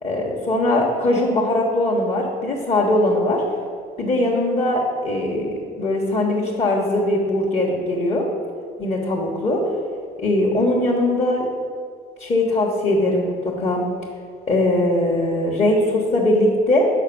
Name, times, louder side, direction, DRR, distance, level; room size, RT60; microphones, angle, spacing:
voice 1, 0.0-3.4 4.0-8.3 8.8-9.6 10.2-11.5 12.2-13.8 14.5-16.9, left 1 dB, 35° left, -3 dB, 1.3 m, -20 dB
6.6 x 5.2 x 7.0 m, 2.1 s
cardioid pair, 110°, 17 cm